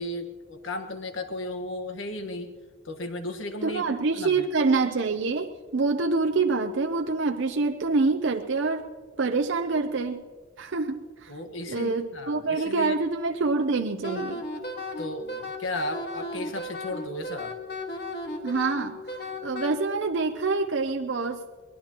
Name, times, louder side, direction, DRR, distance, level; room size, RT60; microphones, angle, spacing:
voice 1, 0.0-2.5 2.8-4.5 11.3-12.9 15.0-17.5, left 1 dB, 80° left, 7 dB, 1.5 m, -35 dB
voice 2, 3.6-8.9 9.2-10.2 10.6-11.3 11.7-14.4 18.4-19.0 19.4-21.6, right 3 dB, 70° right, 5 dB, 0.7 m, -26 dB
Wind instrument woodwind instrument, 14.0-19.7, left 1 dB, 55° left, 1.6 m, -35 dB
23.0 x 19.5 x 3.0 m, 1.5 s
head